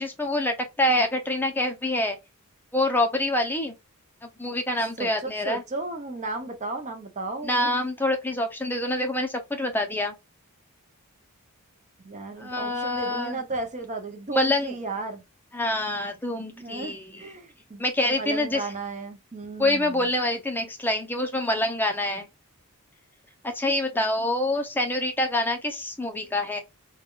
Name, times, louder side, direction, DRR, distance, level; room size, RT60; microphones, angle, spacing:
voice 1, 0.0-2.2 2.7-3.7 4.2-5.6 7.4-10.1 12.4-13.4 14.3-14.7 15.5-17.2 17.8-18.6 19.6-22.3 23.4-26.6, left 1 dB, 10° left, 0.5 m, -26 dB
voice 2, 5.0-7.8 12.0-15.2 16.5-20.1, right 3 dB, 35° right, 0.7 m, -34 dB
3.4 x 2.2 x 2.3 m
head